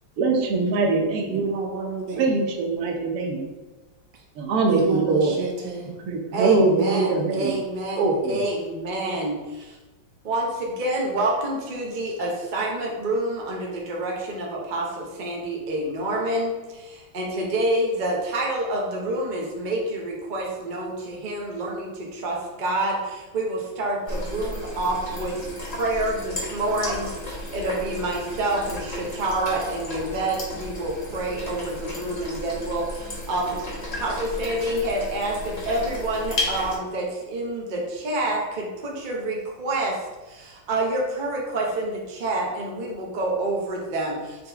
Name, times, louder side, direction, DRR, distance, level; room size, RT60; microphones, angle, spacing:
voice 1, 0.2-1.4 2.1-3.4 4.4-5.3 6.1-7.5 8.0-8.4, right 3 dB, 65° right, 2 dB, 1.0 m, -22 dB
voice 2, 1.3-2.3 4.1-4.2 4.7-6.0 6.4-7.2, right 4 dB, 85° right, 0 dB, 1.6 m, -29 dB
voice 3, 6.3-9.8 10.2-40.0 40.2-44.5, right 1 dB, 45° right, -2 dB, 0.6 m, -28 dB
sound 1, 24.1-36.8, left 1 dB, 30° left, 0.9 m, -34 dB
4.3 x 3.5 x 3.4 m, 1.1 s
omnidirectional pair, 2.0 m